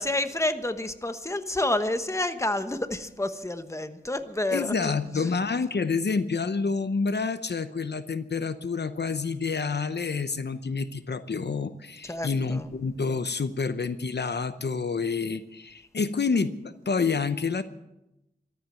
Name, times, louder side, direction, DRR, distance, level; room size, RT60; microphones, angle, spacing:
voice 1, 0.0-5.4 12.0-12.7, left 1 dB, 15° left, 9 dB, 1.1 m, -29 dB
voice 2, 4.5-17.6, left 4 dB, 65° left, 12 dB, 0.8 m, -28 dB
14.0 x 14.0 x 7.5 m, 0.90 s
wide cardioid pair, 80°, 19 cm